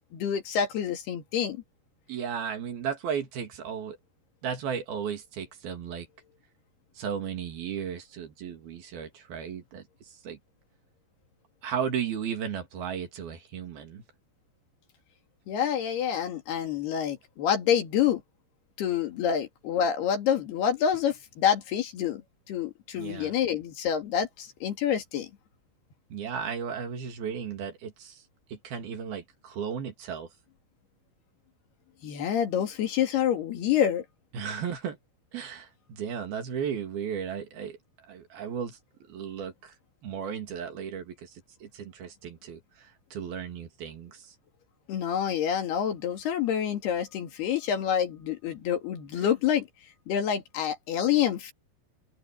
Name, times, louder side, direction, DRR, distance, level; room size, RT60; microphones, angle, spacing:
voice 1, 0.1-1.6 15.5-18.2 18.8-22.2 22.5-25.3 32.0-34.0 44.9-49.7 50.1-51.5, left 9 dB, 65° left, 4.2 m, -27 dB
voice 2, 2.1-4.0 4.4-6.1 7.0-10.4 11.6-14.0 22.9-23.3 26.1-28.2 28.5-30.3 34.3-35.0 35.3-37.8 38.1-38.8 39.1-39.7 40.0-44.3, right 7 dB, 60° right, 4.0 m, -35 dB
omnidirectional pair, 5.0 m